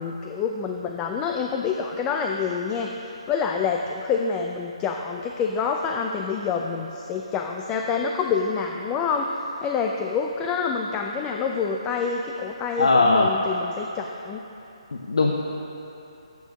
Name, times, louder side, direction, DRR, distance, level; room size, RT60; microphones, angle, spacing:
voice 1, 0.0-14.4, left 5 dB, 15° left, 2 dB, 0.4 m, -27 dB
voice 2, 12.8-13.3 14.9-15.3, left 3 dB, 70° left, 0 dB, 0.8 m, -19 dB
15.5 x 8.5 x 3.0 m, 2.9 s
figure-of-eight pair, 145°, 3 cm